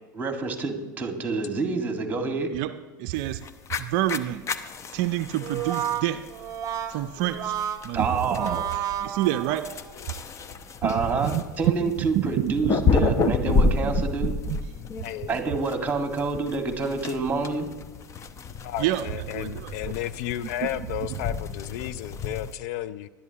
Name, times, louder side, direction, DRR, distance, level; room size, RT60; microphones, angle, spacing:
voice 1, 0.1-2.5 7.9-8.6 10.8-14.3 15.3-17.7, right 4 dB, 15° right, 5 dB, 1.8 m, -28 dB
voice 2, 2.5-3.4 3.8-4.5 4.9-6.3 6.9-7.6 7.8-9.8 10.8-11.4 11.8-14.6 18.8-19.9 20.6-20.7, right 13 dB, 50° right, 11 dB, 0.5 m, -29 dB
sound 1, 3.2-22.5, left 4 dB, 30° left, 0.8 m, -31 dB
Brass instrument, 5.4-9.9, right 10 dB, 35° right, 0.9 m, -31 dB
voice 3, 18.6-23.1, left 12 dB, 55° left, 15 dB, 0.5 m, -33 dB
20.0 x 11.5 x 2.9 m, 1.3 s
hypercardioid pair, 90°, 10 cm